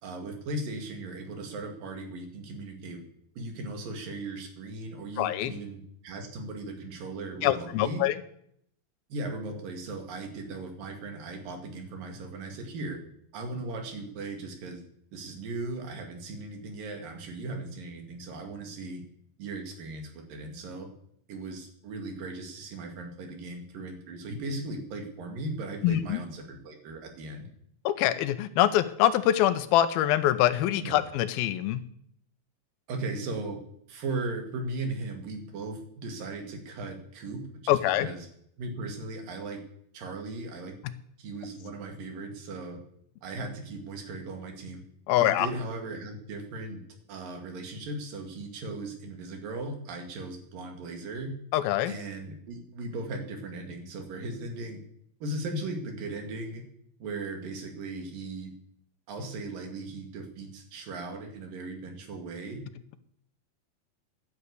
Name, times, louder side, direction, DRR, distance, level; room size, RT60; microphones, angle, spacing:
voice 1, 0.0-3.0 3.4-8.1 9.1-13.0 13.3-14.8 15.1-19.0 19.4-20.9 21.3-27.5 30.8-31.0 32.9-33.6 33.9-38.2 38.6-39.6 39.9-40.7 41.2-42.8 43.2-44.8 45.2-46.8 47.1-51.3 51.9-54.8 55.2-56.6 57.0-58.5 59.1-62.6, right 2 dB, 65° right, 3 dB, 3.9 m, -37 dB
voice 2, 5.2-5.5 7.4-8.2 25.8-26.2 27.8-31.8 37.7-38.1 45.1-45.5 51.5-51.9, left 13 dB, 85° left, 13 dB, 2.7 m, -24 dB
11.0 x 9.7 x 8.3 m, 0.68 s
omnidirectional pair, 4.3 m